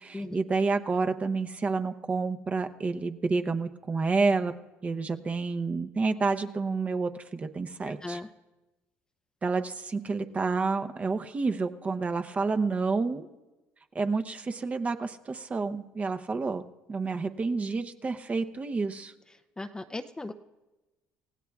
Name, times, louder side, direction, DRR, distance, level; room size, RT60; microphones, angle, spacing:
voice 1, 0.0-4.5 4.8-8.2 9.4-13.3 13.9-16.6 16.9-19.1, right 4 dB, 30° right, 7 dB, 0.8 m, -29 dB
voice 2, 7.8-8.3 19.6-20.3, left 2 dB, 15° left, 9 dB, 0.6 m, -37 dB
28.5 x 16.0 x 2.4 m, 1.1 s
cardioid pair, 95°, 5 cm